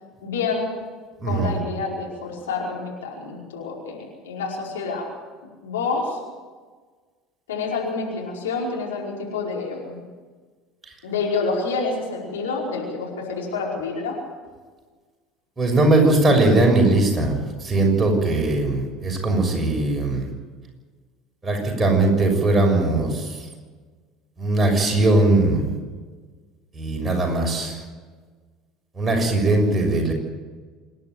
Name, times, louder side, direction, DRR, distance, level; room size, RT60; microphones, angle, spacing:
voice 1, 0.2-0.7 1.2-5.1 5.6-6.2 7.5-10.0 11.0-14.2, left 4 dB, 75° left, -2 dB, 5.0 m, -28 dB
voice 2, 1.2-1.5 15.6-20.3 21.4-23.3 24.4-25.7 26.7-27.8 29.0-30.1, right 2 dB, 20° right, 1 dB, 6.6 m, -20 dB
26.0 x 11.0 x 9.4 m, 1.4 s
figure-of-eight pair, 65°, 0 cm